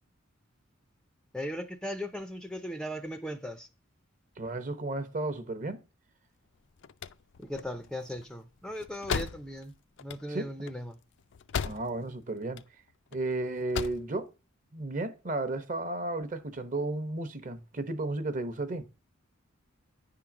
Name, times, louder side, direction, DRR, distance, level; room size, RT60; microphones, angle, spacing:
voice 1, 1.3-3.7 7.4-9.7 10.0-11.0, equal, 5° left, 0.5 m, -38 dB
voice 2, 4.4-5.8 10.3-10.7 11.6-12.6 13.1-14.3 14.7-18.9, right 2 dB, 40° right, 0.8 m, -33 dB
sound 1, 6.5-12.2 12.4-13.2 13.5-14.1, left 6 dB, 60° left, 0.4 m, -37 dB
9.7 x 3.8 x 5.8 m
head